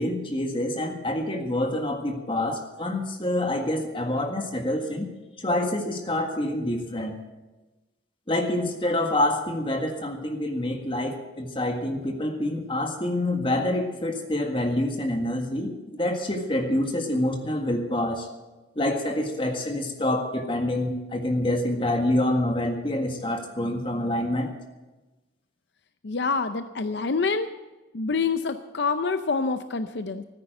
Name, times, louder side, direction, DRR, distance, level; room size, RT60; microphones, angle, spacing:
voice 1, 0.0-5.1 5.4-7.2 8.3-18.3 18.8-24.5, left 1 dB, 30° left, 3 dB, 1.7 m, -27 dB
voice 2, 26.0-27.5 27.9-30.2, left 4 dB, 70° left, 9 dB, 0.6 m, -26 dB
14.0 x 9.8 x 7.9 m, 1.1 s
head